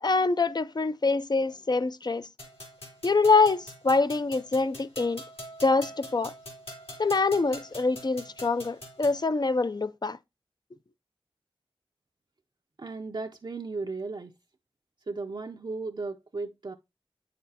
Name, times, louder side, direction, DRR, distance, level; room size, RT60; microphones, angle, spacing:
voice 1, 0.0-2.3 3.0-5.2 5.6-6.3 7.0-10.2, left 3 dB, 45° left, 0.5 m, -25 dB
sound 1, 2.4-9.2, equal, 75° left, 3.3 m, -45 dB
voice 2, 12.8-14.3 15.1-16.7, right 3 dB, 50° right, 0.5 m, -35 dB
9.1 x 6.6 x 2.8 m
wide cardioid pair, 70°, 10 cm